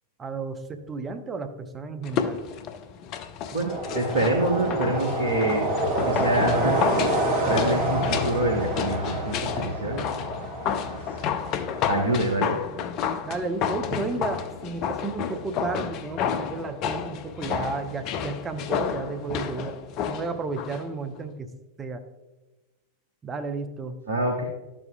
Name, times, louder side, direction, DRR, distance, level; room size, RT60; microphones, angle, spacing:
voice 1, 0.2-2.4 13.2-19.8 20.1-21.5 21.8-22.0 23.2-24.0, right 4 dB, 20° right, 9 dB, 0.7 m, -33 dB
sound 1, 2.0-20.9 21.2-21.3, left 8 dB, 40° left, 0.6 m, -31 dB
voice 2, 3.5-5.7 6.0-6.9 7.4-10.1 11.9-12.6 24.1-24.4, right 1 dB, 65° right, -1 dB, 1.1 m, -26 dB
sound 2, 3.7-12.2, right 1 dB, 35° right, 2.3 m, -28 dB
12.0 x 7.5 x 2.3 m, 1.1 s
figure-of-eight pair, 90°, 0 cm